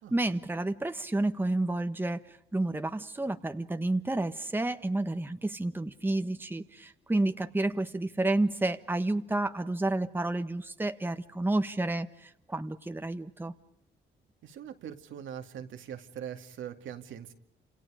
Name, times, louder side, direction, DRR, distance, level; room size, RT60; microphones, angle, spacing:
voice 1, 0.1-2.2 2.5-13.5, right 2 dB, 10° right, 8 dB, 1.3 m, -30 dB
voice 2, 14.4-17.3, right 9 dB, 75° right, 6 dB, 2.3 m, -42 dB
30.0 x 27.5 x 5.0 m, 0.76 s
cardioid pair, 90°, 20 cm